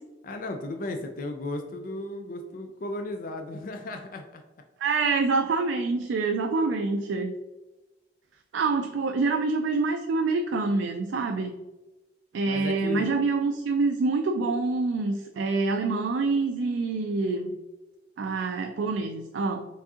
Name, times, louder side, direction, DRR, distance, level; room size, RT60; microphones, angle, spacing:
voice 1, 0.2-4.4 12.4-13.1, left 2 dB, 45° left, 4 dB, 0.4 m, -35 dB
voice 2, 4.8-7.3 8.5-11.5 12.3-17.5 18.2-19.7, right 3 dB, 75° right, 5 dB, 0.3 m, -26 dB
4.6 x 3.5 x 2.8 m, 1.1 s
head